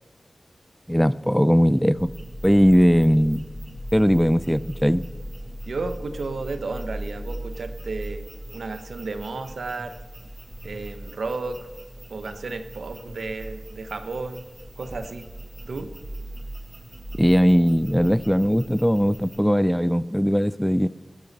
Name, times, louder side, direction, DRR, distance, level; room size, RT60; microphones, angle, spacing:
voice 1, 0.9-2.1 2.4-3.5 3.9-5.0 17.2-20.9, equal, ahead, 17 dB, 0.4 m, -19 dB
sound 1, 2.0-19.4, right 1 dB, 25° right, 2.2 m, -39 dB
voice 2, 5.6-8.2 8.5-10.0 10.6-11.7 12.1-14.5 14.8-15.2 15.7-15.9, right 3 dB, 90° right, 9 dB, 1.0 m, -33 dB
16.0 x 12.5 x 4.1 m, 1.3 s
wide cardioid pair, 65°, 0 cm